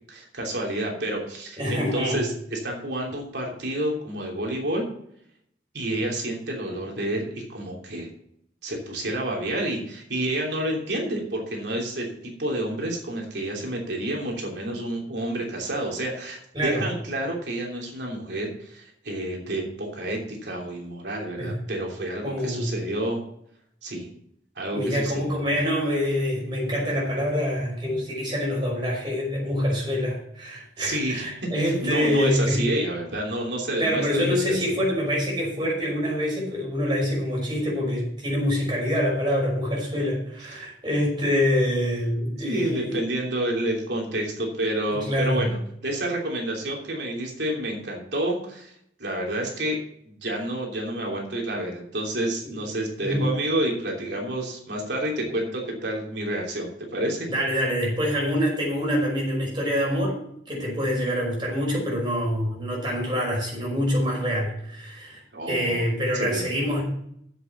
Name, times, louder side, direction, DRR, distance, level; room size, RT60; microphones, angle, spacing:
voice 1, 0.1-4.8 5.7-8.1 8.6-23.2 23.8-24.1 24.6-25.8 30.8-31.2 31.8-34.6 40.5-40.7 42.4-45.6 45.8-48.7 49.0-49.8 50.0-57.3 65.3-65.9 66.1-66.5, right 1 dB, 70° right, -1 dB, 3.1 m, -29 dB
voice 2, 1.6-2.2 16.5-16.8 21.4-21.6 22.2-22.7 24.7-32.6 33.8-43.1 44.9-45.5 52.4-52.5 53.0-53.3 57.3-60.2 60.5-66.8, equal, 25° right, -2 dB, 5.7 m, -25 dB
8.1 x 7.8 x 7.1 m, 0.70 s
head